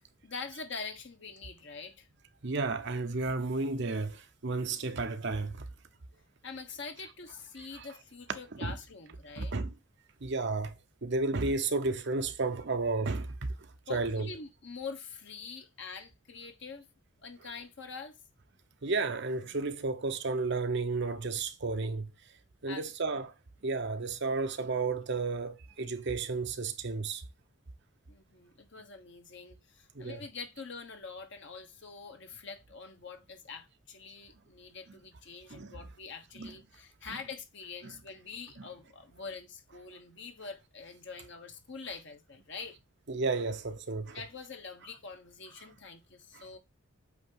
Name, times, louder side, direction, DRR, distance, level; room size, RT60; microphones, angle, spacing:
voice 1, 0.2-2.1 6.4-9.5 13.9-16.9 17.2-18.2 22.7-22.8 28.1-42.8 44.1-46.6, left 4 dB, 55° left, 1.2 m, -45 dB
voice 2, 2.4-5.7 7.7-7.9 8.6-8.8 9.4-9.7 10.2-14.3 18.8-22.1 22.6-23.3 23.6-27.2 29.9-30.2 35.5-35.8 36.4-36.5 37.1-37.2 37.8-37.9 38.6-38.7 43.1-44.2 46.3-46.5, right 3 dB, 55° right, 0.8 m, -32 dB
8.3 x 2.9 x 4.6 m
head